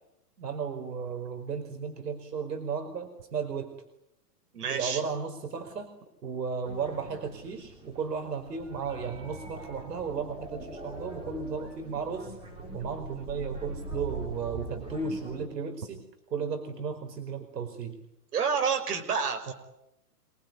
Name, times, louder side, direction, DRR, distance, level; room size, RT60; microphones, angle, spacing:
voice 1, 0.4-3.7 4.6-5.9 6.2-12.3 12.7-16.0 16.3-18.0 19.5-19.6, right 5 dB, 90° right, 6 dB, 5.0 m, -34 dB
voice 2, 4.5-5.0 18.3-19.5, right 6 dB, 75° right, 6 dB, 6.0 m, -28 dB
sound 1, 6.6-15.5, right 2 dB, 10° right, 5.0 m, -42 dB
27.0 x 20.5 x 9.6 m, 0.85 s
hypercardioid pair, 170°, 47 cm